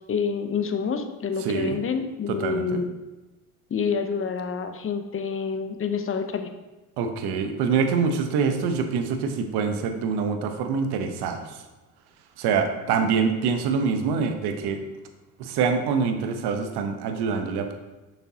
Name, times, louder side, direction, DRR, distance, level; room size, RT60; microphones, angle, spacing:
voice 1, 0.1-2.9 3.7-6.5, left 6 dB, 30° left, 7 dB, 0.8 m, -27 dB
voice 2, 1.4-1.8 2.3-2.8 7.0-11.6 12.4-14.8 15.4-17.7, right 5 dB, 65° right, 6 dB, 1.0 m, -25 dB
6.6 x 6.3 x 2.8 m, 1.1 s
hypercardioid pair, 65°, 43 cm